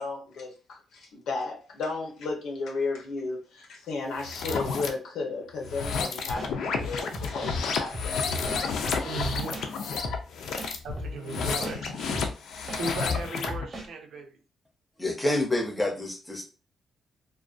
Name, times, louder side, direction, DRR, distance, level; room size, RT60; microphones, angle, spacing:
voice 1, 0.0-9.1, left 3 dB, 85° left, 0 dB, 0.8 m, -34 dB
sound 1, 4.2-4.9 5.6-13.6, left 5 dB, 70° left, 0.4 m, -31 dB
sound 2, 5.8-6.0 6.4-7.6 7.9-8.1 8.5-9.7 10.0-10.2 10.6-11.8 12.1-12.3 12.7-13.9, left 2 dB, 25° right, 0.8 m, -36 dB
voice 2, 9.0-9.5 10.8-12.3 12.8-14.4, right 3 dB, 55° right, 4 dB, 0.5 m, -36 dB
voice 3, 15.0-16.4, left 1 dB, 10° left, 1 dB, 0.5 m, -27 dB
2.4 x 2.2 x 2.4 m, 0.35 s
cardioid pair, 165°, 0 cm